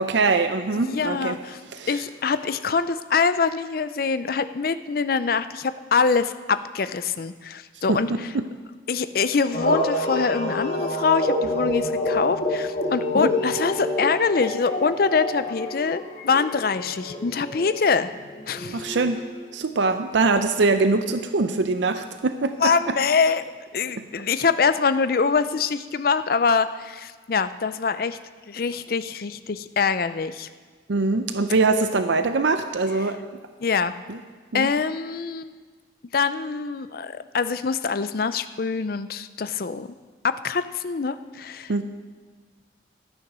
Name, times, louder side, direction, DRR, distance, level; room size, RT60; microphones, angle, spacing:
voice 1, 0.0-1.3 1.7-2.0 7.9-8.4 13.1-13.3 18.7-19.2 19.5-22.7 30.9-33.2 34.1-34.2 34.5-34.7 41.7-41.8, right 3 dB, 75° right, 9 dB, 0.6 m, -23 dB
voice 2, 0.7-1.6 1.9-8.3 8.9-18.1 18.5-19.0 22.6-23.4 23.7-28.2 28.5-30.5 33.6-33.9 34.5-35.6 36.1-39.9 40.2-41.8, left 5 dB, 50° left, 12 dB, 0.5 m, -24 dB
sound 1, 9.5-19.5, left 1 dB, 35° left, 1.8 m, -28 dB
13.0 x 9.1 x 6.1 m, 1.5 s
head